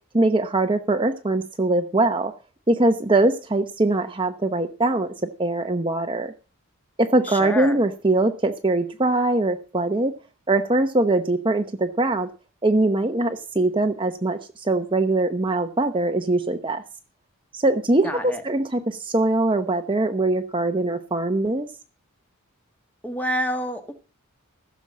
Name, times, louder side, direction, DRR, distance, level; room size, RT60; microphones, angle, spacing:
voice 1, 0.1-2.3 2.7-5.1 5.4-6.3 7.0-10.1 10.5-12.3 12.6-16.8 17.5-21.7, right 2 dB, 20° right, 7 dB, 0.9 m, -22 dB
voice 2, 7.2-7.8 18.0-18.4 23.0-23.9, equal, 5° left, 7 dB, 1.7 m, -28 dB
16.0 x 7.2 x 7.4 m, 0.35 s
head